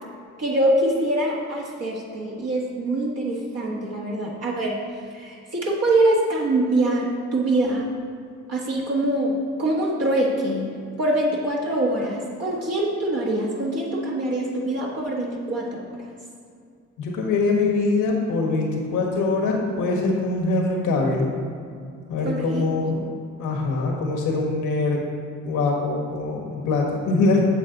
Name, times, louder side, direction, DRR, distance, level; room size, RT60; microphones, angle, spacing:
voice 1, 0.4-4.8 5.1-7.9 8.5-10.7 11.0-15.9 22.2-22.6, right 1 dB, 55° right, -4 dB, 1.5 m, -24 dB
voice 2, 17.0-21.3 22.1-23.1 23.4-25.0 25.4-27.5, left 3 dB, 90° left, -1 dB, 1.5 m, -23 dB
7.4 x 7.4 x 3.9 m, 2.4 s
cardioid pair, 90°, 30 cm